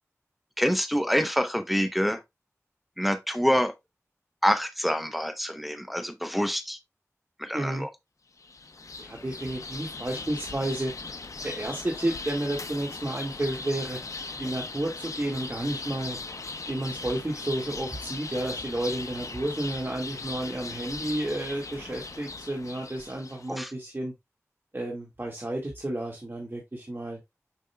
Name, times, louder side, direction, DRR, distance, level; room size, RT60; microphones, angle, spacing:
voice 1, 0.6-2.2 3.0-3.7 4.4-6.8 7.4-7.9 23.5-23.7, equal, ahead, 0.9 m, -26 dB
voice 2, 7.5-7.9 9.0-10.9 11.4-14.0 14.3-16.2 16.7-24.1 24.7-27.2, right 1 dB, 40° right, 1.9 m, -31 dB
sound 1, 8.4-23.5, left 3 dB, 80° left, 0.6 m, -39 dB
7.6 x 5.4 x 2.3 m
wide cardioid pair, 55°, 6 cm